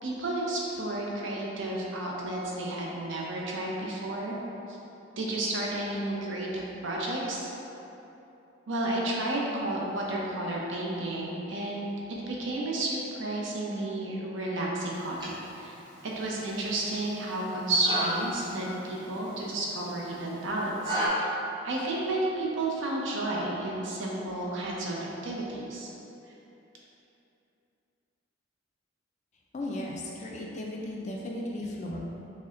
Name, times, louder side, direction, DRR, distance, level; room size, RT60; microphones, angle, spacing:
voice 1, 0.0-4.4 4.7-4.8 5.2-7.5 8.7-15.8 16.0-25.9, right 1 dB, 75° right, -3 dB, 0.7 m, -32 dB
sound 1, 14.9-21.1, right 1 dB, 20° right, 0.6 m, -36 dB
voice 2, 29.5-32.0, left 1 dB, 35° left, -1 dB, 0.3 m, -35 dB
6.4 x 2.1 x 2.5 m, 2.9 s
head